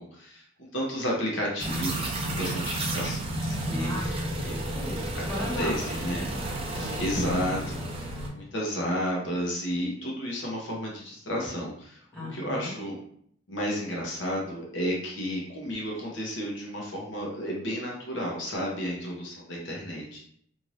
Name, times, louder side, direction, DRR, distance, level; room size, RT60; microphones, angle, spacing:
voice 1, 0.0-4.6 5.1-5.2 5.6-6.3 6.7-7.8 8.3-13.0 13.5-20.3, equal, 65° left, -2 dB, 0.9 m, -32 dB
sound 1, 1.6-8.3, right 1 dB, 30° right, 0.5 m, -31 dB
voice 2, 3.8-6.1 6.7-7.0 12.1-12.8, equal, 5° left, -8 dB, 1.4 m, -37 dB
2.7 x 2.5 x 3.1 m, 0.65 s
head